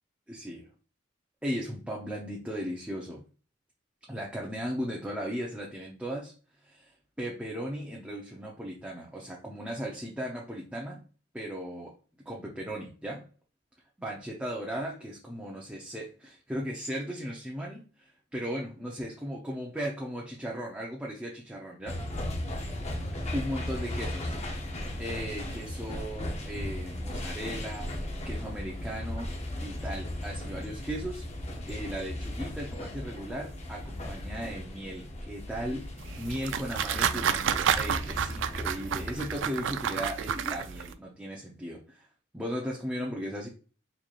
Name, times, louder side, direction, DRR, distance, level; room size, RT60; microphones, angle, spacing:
voice 1, 0.3-0.6 1.4-3.2 4.1-6.3 6.6-11.0 11.3-11.9 12.3-13.3 14.0-22.0 23.3-24.3 25.0-29.3 29.6-31.2 31.7-35.9 36.2-42.1 42.3-43.5, equal, 5° right, -3 dB, 0.6 m, -37 dB
sound 1, 21.9-39.4, left 1 dB, 35° left, 0.7 m, -37 dB
sound 2, 36.0-40.9, right 8 dB, 80° right, 0.4 m, -30 dB
4.0 x 3.1 x 2.4 m, 0.37 s
head